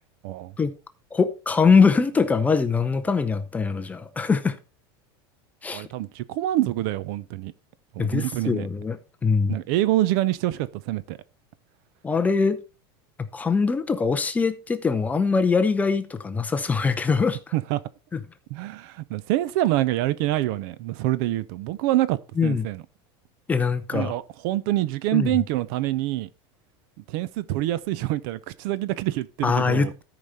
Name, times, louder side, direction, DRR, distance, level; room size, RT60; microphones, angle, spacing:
voice 1, 1.1-4.6 5.6-5.8 8.0-9.6 12.0-12.6 13.2-17.4 18.1-18.2 22.4-22.7 23.5-24.1 25.1-25.3 29.4-30.0, left 5 dB, 10° left, 0.6 m, -22 dB
voice 2, 5.7-7.5 7.9-8.7 9.5-11.2 17.5-17.8 18.5-22.8 23.9-26.3 27.1-29.9, right 15 dB, 60° right, 0.6 m, -26 dB
13.0 x 5.1 x 4.1 m
supercardioid pair, 150°, 13 cm